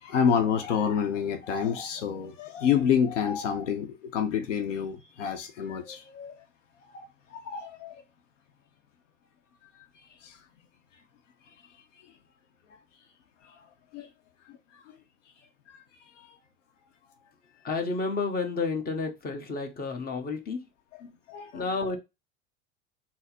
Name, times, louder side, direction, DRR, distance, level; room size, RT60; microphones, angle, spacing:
voice 1, 0.0-6.4 6.9-8.0 10.2-10.4 13.4-13.6 13.9-14.1 14.5-14.9 15.7-15.8 16.2-16.3 21.0-21.6, left 7 dB, 85° left, 0.7 m, -29 dB
voice 2, 17.6-20.6 21.5-22.0, left 4 dB, 25° left, 1.1 m, -30 dB
4.1 x 2.0 x 4.1 m
hypercardioid pair, 85°, 36 cm